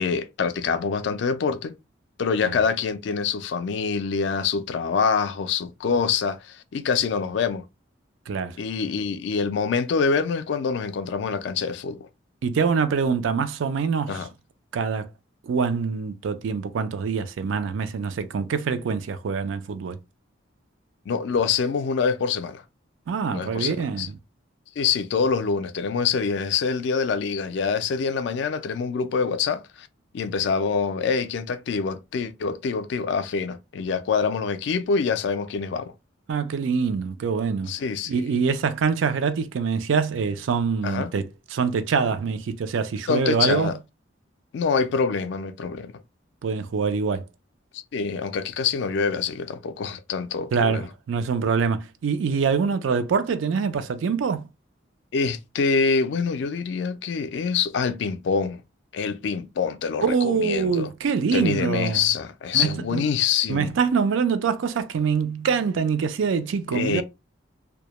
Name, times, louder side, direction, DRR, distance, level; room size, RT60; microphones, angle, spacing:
voice 1, 0.0-1.8 2.2-7.6 8.6-12.1 14.1-14.3 21.1-22.6 23.3-24.1 24.8-29.9 30.1-35.9 37.7-38.2 40.8-41.1 43.1-43.7 44.5-45.9 47.7-50.9 55.1-58.6 58.9-60.9 61.3-63.7 66.7-67.0, left 5 dB, 65° left, 0.3 m, -25 dB
voice 2, 8.3-8.6 12.4-14.2 14.7-15.1 15.4-20.0 23.1-24.2 36.3-37.7 38.1-41.2 41.5-43.7 46.4-47.2 50.5-54.5 60.0-62.1 62.5-63.0 63.5-67.0, right 5 dB, 80° right, 0.4 m, -24 dB
2.2 x 2.0 x 2.9 m
head